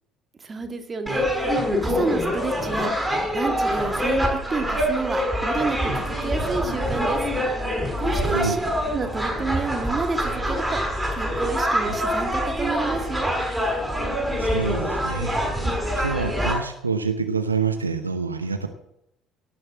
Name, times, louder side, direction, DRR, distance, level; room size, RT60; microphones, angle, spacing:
voice 1, 0.4-2.9 3.3-7.3 8.0-8.6 8.9-10.8 11.1-13.3, right 4 dB, 30° right, 6 dB, 2.4 m, -30 dB
sound 1, 1.1-16.6, equal, 5° right, 5.7 m, -25 dB
voice 2, 14.4-15.4 15.9-18.7, right 5 dB, 85° right, 7 dB, 0.9 m, -27 dB
18.0 x 7.8 x 7.5 m, 0.80 s
figure-of-eight pair, 55°, 0 cm